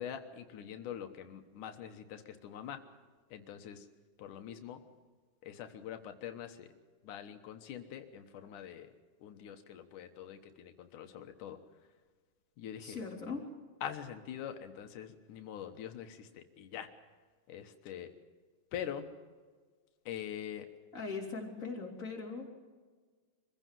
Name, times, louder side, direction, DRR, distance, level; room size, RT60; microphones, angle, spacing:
voice 1, 0.0-2.8 3.3-3.9 4.2-4.8 5.4-6.7 7.0-8.9 9.2-11.6 12.6-13.0 13.8-16.9 17.5-18.1 18.7-19.1 20.1-20.7, left 9 dB, 90° left, 7 dB, 2.7 m, -44 dB
voice 2, 12.8-13.5 20.9-22.5, left 4 dB, 25° left, -1 dB, 3.9 m, -40 dB
24.5 x 15.5 x 7.6 m, 1.5 s
omnidirectional pair, 3.5 m